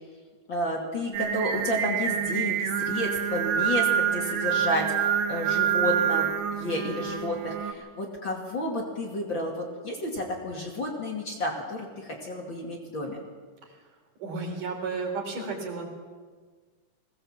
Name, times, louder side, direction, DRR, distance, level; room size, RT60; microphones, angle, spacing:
voice 1, 0.5-13.2, left 1 dB, 35° left, 0 dB, 2.7 m, -31 dB
Singing, 1.1-7.7, right 9 dB, 90° right, 2.9 m, -27 dB
voice 2, 14.2-15.9, right 4 dB, 65° right, 2 dB, 5.0 m, -33 dB
21.0 x 17.5 x 7.4 m, 1.5 s
omnidirectional pair, 4.0 m